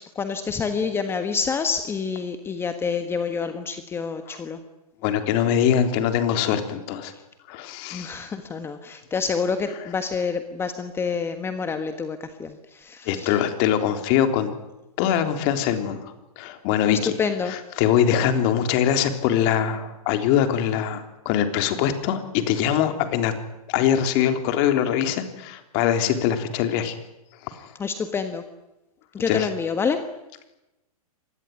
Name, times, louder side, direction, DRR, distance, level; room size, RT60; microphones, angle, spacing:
voice 1, 0.1-4.6 7.9-13.3 16.9-17.5 27.8-28.4 29.1-30.0, left 5 dB, 10° left, 8 dB, 1.5 m, -27 dB
voice 2, 5.0-7.1 7.5-8.3 13.1-14.5 15.0-17.1 17.5-23.3 23.7-27.0 27.4-27.7 29.3-29.5, left 9 dB, 35° left, 7 dB, 3.6 m, -23 dB
25.5 x 20.5 x 9.6 m, 0.95 s
hypercardioid pair, 150°, 19 cm